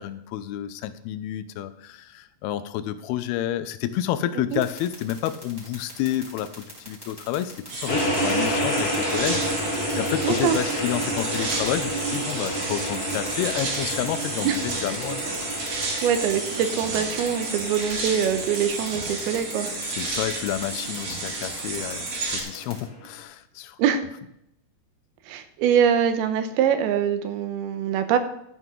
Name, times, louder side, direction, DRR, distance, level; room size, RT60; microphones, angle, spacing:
voice 1, 0.0-15.2 19.8-23.8, left 12 dB, 90° left, 12 dB, 2.7 m, -30 dB
sound 1, 4.5-22.8, equal, 5° right, 4.1 m, -43 dB
sound 2, 7.7-22.4, right 3 dB, 65° right, 4.1 m, -31 dB
sound 3, 7.9-23.2, equal, 40° left, 1.5 m, -31 dB
voice 2, 10.2-10.6 14.4-14.6 16.0-19.7 23.8-24.0 25.3-28.2, right 8 dB, 90° right, 9 dB, 2.8 m, -23 dB
12.5 x 9.2 x 3.8 m, 0.79 s
omnidirectional pair, 4.4 m